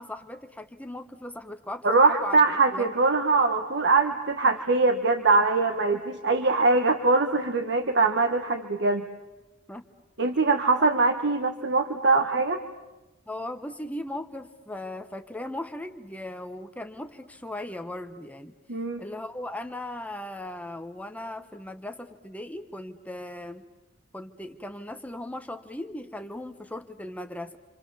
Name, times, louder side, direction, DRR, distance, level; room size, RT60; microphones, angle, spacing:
voice 1, 0.0-2.4 2.7-2.9 9.7-9.9 10.3-10.5 10.8-10.9 13.3-18.5 19.0-23.6 24.1-27.6, left 1 dB, 10° left, 7 dB, 1.0 m, -38 dB
voice 2, 1.8-9.1 10.2-12.6 18.7-19.0, right 3 dB, 60° right, 5 dB, 1.5 m, -22 dB
29.0 x 26.5 x 7.1 m, 1.1 s
head